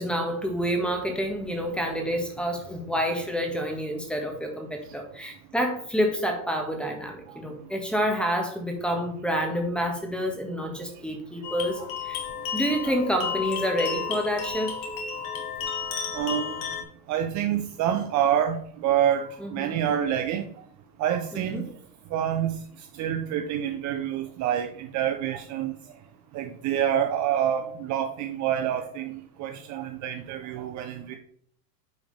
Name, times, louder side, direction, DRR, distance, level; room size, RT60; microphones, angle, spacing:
voice 1, 0.0-12.2 12.5-14.7 19.4-19.7 21.3-21.7, equal, ahead, 3 dB, 1.6 m, -28 dB
sound 1, 11.4-16.8, left 7 dB, 45° left, 1.8 m, -32 dB
voice 2, 16.1-16.7 17.1-20.5 21.0-21.6 22.1-22.6 23.0-25.7 26.3-31.2, right 10 dB, 35° right, 5 dB, 0.7 m, -27 dB
9.2 x 4.9 x 3.4 m, 0.63 s
hypercardioid pair, 115°, 50 cm